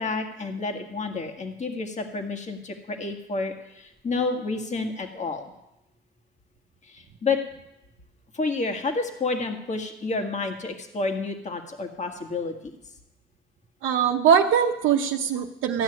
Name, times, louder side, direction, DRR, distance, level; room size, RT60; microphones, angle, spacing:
voice 1, 0.0-5.4 6.8-7.4 8.3-12.6, left 3 dB, 35° left, 5 dB, 1.7 m, -29 dB
voice 2, 13.8-15.8, right 7 dB, 85° right, 1 dB, 0.9 m, -21 dB
14.5 x 6.4 x 9.8 m, 0.92 s
cardioid pair, 90°, 20 cm